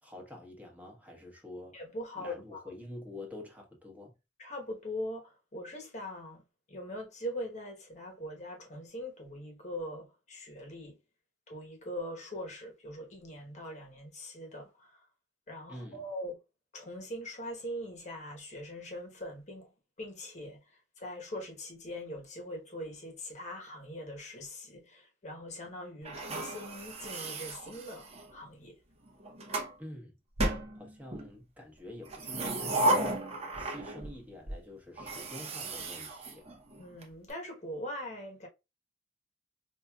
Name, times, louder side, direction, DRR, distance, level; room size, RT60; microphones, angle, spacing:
voice 1, 0.0-1.8 2.2-4.1 15.7-16.0 29.8-30.1 30.7-33.3 33.6-36.4, left 1 dB, 10° right, 1.1 m, -47 dB
voice 2, 1.7-2.6 4.4-11.0 11.5-15.1 15.5-16.4 16.7-19.7 20.0-20.6 21.0-28.8 36.8-38.5, left 1 dB, 40° left, 1.0 m, -42 dB
sound 1, 26.1-28.3 29.1-29.7 30.4-31.3 32.0-34.2 34.5-34.6 35.0-37.0, right 1 dB, 35° right, 0.8 m, -34 dB
4.8 x 2.6 x 2.3 m
head